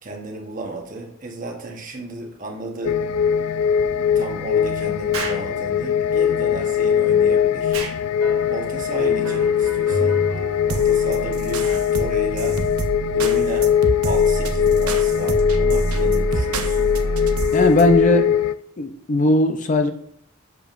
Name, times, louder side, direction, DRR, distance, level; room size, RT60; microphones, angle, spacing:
voice 1, 0.0-3.0 4.1-7.8 8.5-10.2 10.7-12.6 13.1-13.7 14.0-17.0, right 2 dB, 35° right, 2 dB, 1.1 m, -33 dB
sound 1, 2.8-18.5, left 8 dB, 90° left, 0.4 m, -21 dB
Explosion, 5.1-5.5 7.7-8.0, right 4 dB, 75° right, 1.3 m, -29 dB
sound 2, 8.2-8.7 9.1-17.9, right 2 dB, 90° right, 0.8 m, -27 dB
voice 2, 17.5-18.3 18.8-19.9, left 1 dB, 35° left, 6 dB, 0.5 m, -18 dB
7.8 x 7.1 x 2.5 m, 0.65 s
head